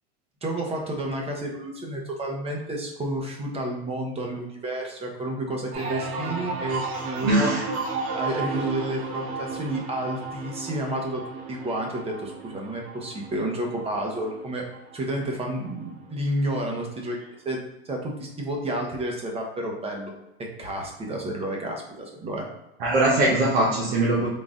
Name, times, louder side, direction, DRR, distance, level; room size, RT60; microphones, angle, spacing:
voice 1, 0.4-7.5 8.1-11.2 11.5-14.6 14.9-17.6 17.9-20.1 20.4-22.5, right 1 dB, 20° right, 0 dB, 1.0 m, -30 dB
sound 1, 5.7-15.3 15.7-16.2, right 4 dB, 50° right, 1.0 m, -33 dB
voice 2, 7.2-7.6 22.8-24.3, right 2 dB, 70° right, -5 dB, 1.1 m, -21 dB
3.9 x 2.5 x 3.7 m, 0.92 s
supercardioid pair, 120°, 31 cm